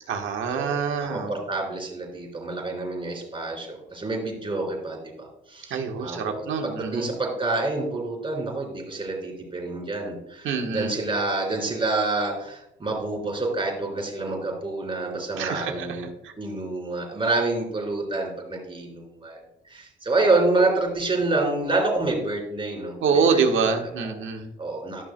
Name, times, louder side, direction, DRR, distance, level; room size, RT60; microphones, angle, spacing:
voice 1, 0.1-1.3 5.7-7.1 10.4-10.9 15.3-16.3 23.0-24.5, right 5 dB, 80° right, 4 dB, 1.3 m, -26 dB
voice 2, 1.0-16.1 16.4-19.4 19.7-23.6 24.6-25.0, right 2 dB, 25° right, 0 dB, 3.0 m, -27 dB
13.0 x 6.0 x 2.2 m, 0.87 s
cardioid pair, 90°, 20 cm